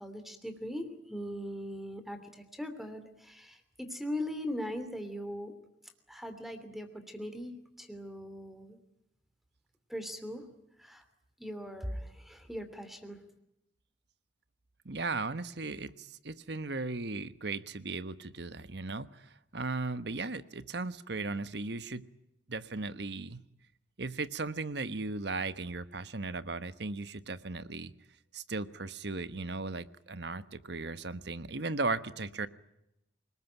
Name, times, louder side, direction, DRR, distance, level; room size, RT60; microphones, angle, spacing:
voice 1, 0.0-5.5 6.1-8.8 9.9-10.5 10.8-11.0 11.4-13.2, equal, ahead, 9 dB, 2.9 m, -40 dB
voice 2, 14.8-22.1 22.5-23.4 24.0-27.9 28.3-32.5, right 3 dB, 60° right, 13 dB, 1.2 m, -37 dB
28.0 x 20.0 x 9.1 m, 0.86 s
head